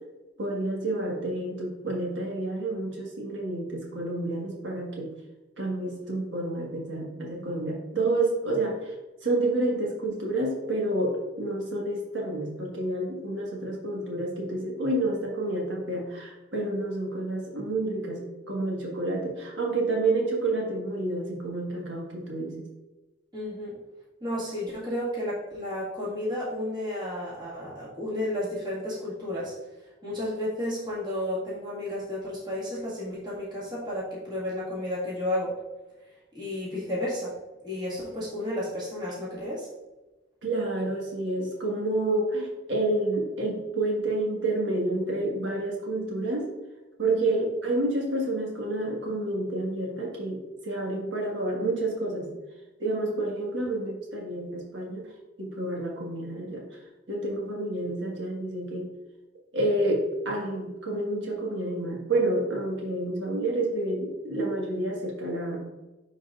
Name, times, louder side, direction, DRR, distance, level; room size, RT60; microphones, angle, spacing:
voice 1, 0.4-5.1 5.6-8.9 9.2-22.5 40.4-46.5 47.0-52.3 52.8-55.1 55.4-56.6 57.1-58.9 59.5-65.6, right 2 dB, 65° right, -2 dB, 1.6 m, -29 dB
voice 2, 23.3-23.7 24.2-29.5 30.0-35.5 36.3-37.3 37.6-39.7 47.2-47.4, left 1 dB, 25° right, -8 dB, 1.7 m, -32 dB
10.5 x 4.0 x 2.4 m, 1.1 s
head